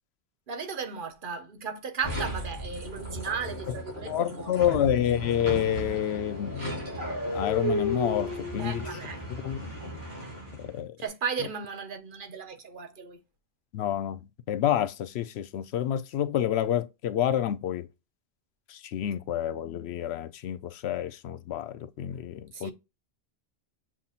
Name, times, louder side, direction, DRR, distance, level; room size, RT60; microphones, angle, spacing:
voice 1, 0.5-4.5 8.6-9.2 11.0-13.2 22.5-22.7, right 6 dB, 55° right, 1.0 m, -35 dB
sound 1, 2.0-10.8, equal, 80° right, 3.5 m, -34 dB
voice 2, 4.1-6.7 7.3-8.9 9.4-9.6 10.6-10.9 13.7-14.2 14.5-17.9 18.7-22.7, left 11 dB, 90° left, 0.8 m, -28 dB
7.3 x 2.7 x 2.4 m
omnidirectional pair, 1.1 m